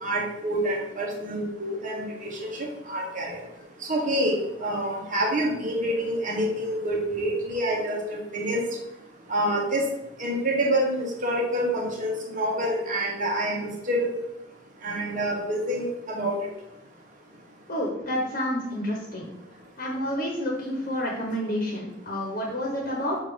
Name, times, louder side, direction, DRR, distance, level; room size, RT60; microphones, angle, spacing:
voice 1, 0.0-2.5 2.9-3.3 3.9-4.3 4.6-8.6 9.3-9.8 10.2-14.1 14.8-15.9 16.1-16.3, right 1 dB, 45° right, -1 dB, 1.3 m, -27 dB
voice 2, 17.7-19.2 19.8-23.2, equal, 45° left, -2 dB, 1.2 m, -29 dB
7.0 x 2.8 x 5.1 m, 0.89 s
head